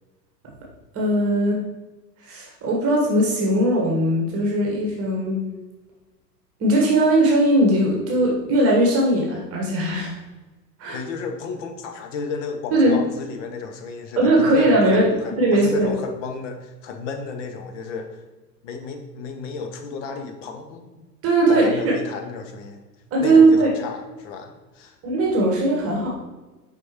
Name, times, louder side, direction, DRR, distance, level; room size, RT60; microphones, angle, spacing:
voice 1, 0.9-1.6 2.2-5.4 6.6-10.1 10.8-11.0 12.7-13.0 14.2-15.0 15.4-15.9 21.2-21.9 23.1-23.7 25.0-26.1, right 1 dB, 25° right, -2 dB, 1.4 m, -19 dB
voice 2, 10.9-18.2 18.6-21.1 21.5-22.8 23.2-25.0, left 5 dB, 45° left, 5 dB, 1.1 m, -33 dB
6.3 x 5.1 x 3.0 m, 1.1 s
figure-of-eight pair, 95°, 50 cm